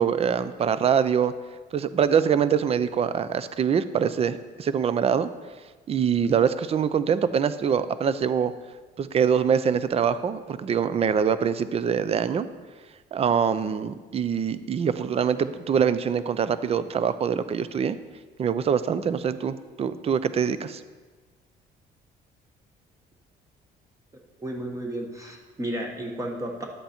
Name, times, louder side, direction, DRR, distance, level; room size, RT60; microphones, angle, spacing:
voice 1, 0.0-1.3 1.7-5.3 5.9-8.5 9.0-12.5 13.1-18.0 18.4-20.8, right 7 dB, 35° right, 14 dB, 0.5 m, -24 dB
voice 2, 24.4-26.6, right 1 dB, 20° right, 0 dB, 1.3 m, -33 dB
11.5 x 8.0 x 4.4 m, 1.4 s
cardioid pair, 110°, 17 cm